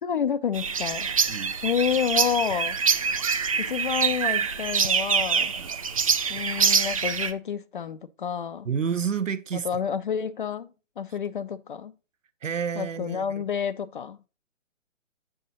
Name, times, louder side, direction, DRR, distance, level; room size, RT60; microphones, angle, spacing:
voice 1, 0.0-1.1 1.6-2.8 3.6-5.5 6.3-8.7 9.5-10.7 11.0-11.9 12.8-14.2, left 7 dB, 40° left, 0.5 m, -29 dB
sound 1, 0.5-7.3, right 6 dB, 30° right, 0.4 m, -25 dB
voice 2, 8.6-9.7 12.4-13.4, right 7 dB, 75° right, 1.0 m, -29 dB
7.8 x 6.2 x 3.8 m
figure-of-eight pair, 140°, 38 cm